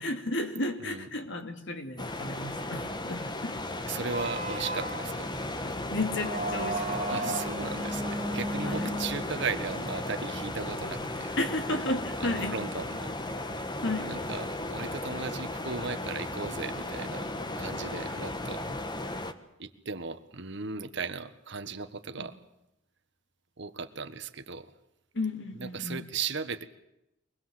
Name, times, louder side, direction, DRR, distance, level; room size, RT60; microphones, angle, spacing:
voice 1, 0.0-3.6 5.6-7.4 8.6-9.0 11.4-12.6 13.8-14.1 22.2-22.3 25.1-26.0, left 2 dB, 60° left, 6 dB, 2.8 m, -33 dB
sound 1, 2.0-19.3, left 2 dB, 20° left, 1.4 m, -35 dB
voice 2, 3.8-5.3 7.1-11.4 12.2-13.2 14.0-17.3 17.6-18.7 19.6-22.3 23.6-24.7 25.6-26.6, right 5 dB, 60° right, 10 dB, 1.6 m, -37 dB
sound 2, 4.1-11.9, right 1 dB, 35° right, 3.1 m, -36 dB
24.0 x 20.0 x 7.8 m, 0.85 s
head